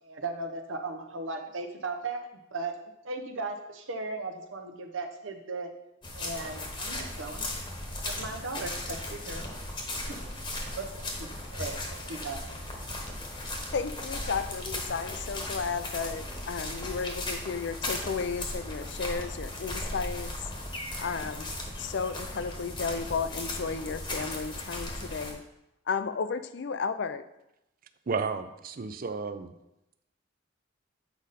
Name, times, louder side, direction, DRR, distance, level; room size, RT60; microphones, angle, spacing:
voice 1, 0.0-2.7 3.0-5.7 6.1-7.5 8.0-9.4 10.0-10.2 10.7-12.4, right 3 dB, 70° right, 5 dB, 0.9 m, -37 dB
sound 1, 6.0-25.3, left 1 dB, 25° left, 1.1 m, -37 dB
sound 2, 9.0-20.2, equal, 5° right, 1.2 m, -55 dB
voice 2, 13.7-20.3 21.0-21.5 21.8-25.4 25.9-27.2, left 5 dB, 55° left, 11 dB, 0.4 m, -33 dB
voice 3, 28.1-29.5, right 4 dB, 45° right, 11 dB, 0.5 m, -32 dB
8.1 x 5.1 x 4.1 m, 0.88 s
head